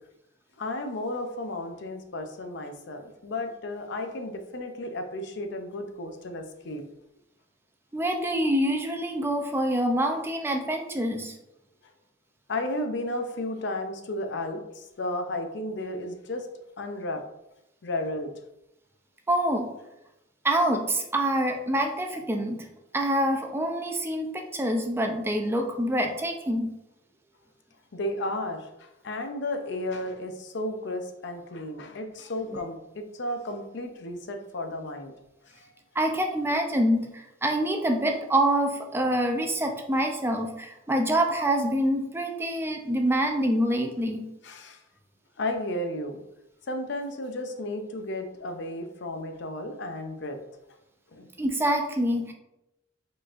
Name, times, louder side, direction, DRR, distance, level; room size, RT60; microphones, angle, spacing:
voice 1, 0.6-6.8 12.5-16.5 16.8-17.2 17.8-18.3 27.9-35.1 35.4-35.5 44.4-44.8 45.4-46.2 46.7-50.4 51.1-51.3, left 1 dB, 60° left, 6 dB, 0.5 m, -33 dB
voice 2, 7.9-11.3 19.3-19.7 20.4-22.7 22.9-26.7 36.0-44.3 51.4-52.3, right 1 dB, 10° right, 3 dB, 0.4 m, -26 dB
5.0 x 3.8 x 2.5 m, 0.88 s
head